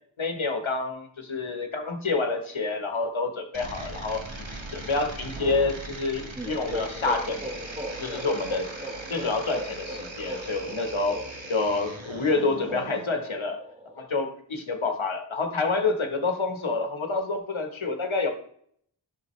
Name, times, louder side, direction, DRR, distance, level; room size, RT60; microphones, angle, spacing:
voice 1, 0.2-7.5 8.0-8.7 9.1-11.2 11.5-13.6 14.0-18.3, left 3 dB, 80° left, 5 dB, 1.2 m, -28 dB
sound 1, 3.5-13.0, right 2 dB, 75° right, 1.5 m, -40 dB
sound 2, 6.3-14.1, equal, 15° right, 1.2 m, -38 dB
11.0 x 6.3 x 3.2 m, 0.65 s
wide cardioid pair, 45°, 47 cm